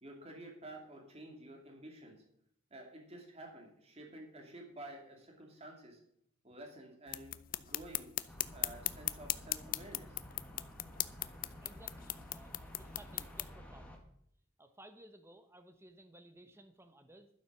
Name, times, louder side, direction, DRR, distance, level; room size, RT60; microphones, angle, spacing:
voice 1, 0.0-2.2 2.7-6.0 6.4-10.2, right 1 dB, 30° right, 1 dB, 2.7 m, -51 dB
sound 1, 7.1-13.5, left 15 dB, 40° left, 0.4 m, -39 dB
sound 2, 8.3-14.0, equal, 5° left, 1.7 m, -52 dB
voice 2, 11.4-14.0 14.6-17.3, right 1 dB, 10° right, 8 dB, 1.1 m, -58 dB
11.5 x 8.0 x 6.1 m, 0.72 s
head